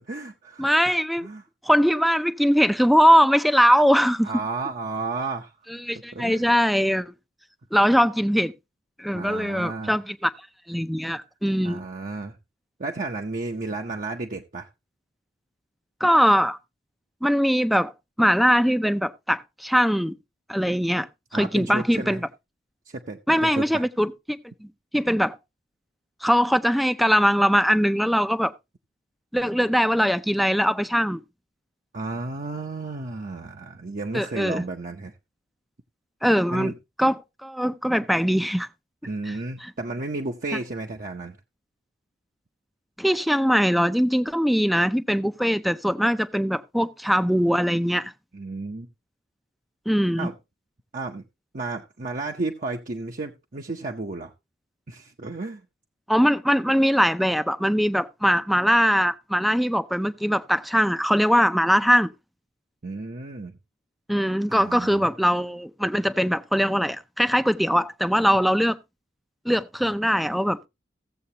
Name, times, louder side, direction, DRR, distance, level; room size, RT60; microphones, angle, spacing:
voice 1, 0.0-0.7 1.2-1.4 4.2-5.5 6.1-6.4 9.1-10.0 11.6-12.4 12.8-14.7 21.3-22.2 22.9-23.8 31.9-35.1 36.5-36.7 39.0-41.4 48.3-48.9 50.2-50.3 50.9-51.3 51.5-54.3 54.9-55.6 62.8-63.6 64.5-65.1, right 3 dB, 45° right, 0.7 m, -33 dB
voice 2, 0.6-1.3 1.6-4.3 5.8-7.1 7.7-8.5 9.0-10.3 10.7-11.8 16.0-16.6 17.2-17.9 18.2-20.1 20.5-21.1 21.3-22.3 23.3-24.1 24.6-24.7 24.9-25.4 26.2-28.5 29.3-31.2 34.1-34.6 36.2-36.7 37.0-38.7 39.3-39.4 39.6-39.7 43.0-48.1 49.9-50.3 56.1-62.1 64.1-68.8 69.5-70.7, equal, ahead, 0.5 m, -21 dB
16.0 x 7.7 x 2.8 m
head